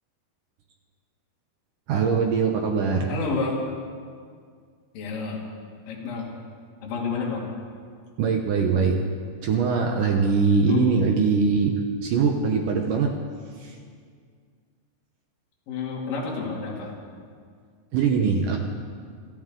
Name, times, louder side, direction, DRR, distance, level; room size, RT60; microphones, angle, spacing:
voice 1, 1.9-3.1 8.2-9.0 9.4-13.1 13.6-13.8 17.9-18.6, right 5 dB, 80° right, 2 dB, 1.9 m, -22 dB
voice 2, 3.1-3.6 4.9-5.4 5.9-6.3 6.8-7.4 10.7-11.1 15.7-17.0, left 5 dB, 55° left, -3 dB, 3.9 m, -29 dB
26.5 x 13.0 x 3.8 m, 2.1 s
omnidirectional pair, 5.1 m